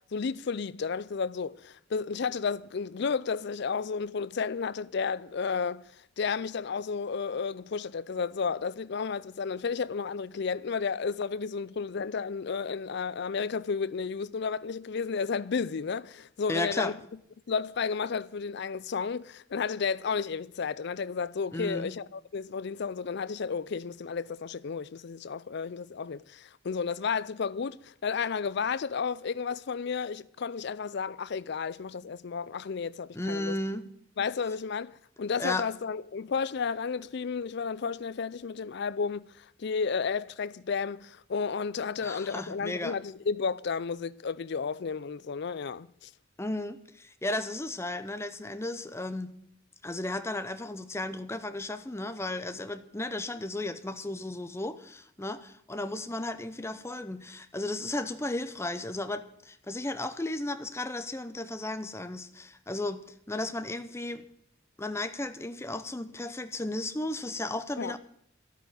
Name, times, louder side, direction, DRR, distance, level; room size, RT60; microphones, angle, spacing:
voice 1, 0.1-5.8 6.2-16.9 17.5-33.5 34.2-46.1 67.8-67.9, left 5 dB, 55° left, 0.4 m, -32 dB
voice 2, 16.5-17.0 21.5-21.9 33.1-33.9 35.4-35.7 42.0-43.0 46.4-49.3 49.8-64.3 64.8-68.0, left 2 dB, 15° left, 0.7 m, -34 dB
13.0 x 8.3 x 9.1 m
head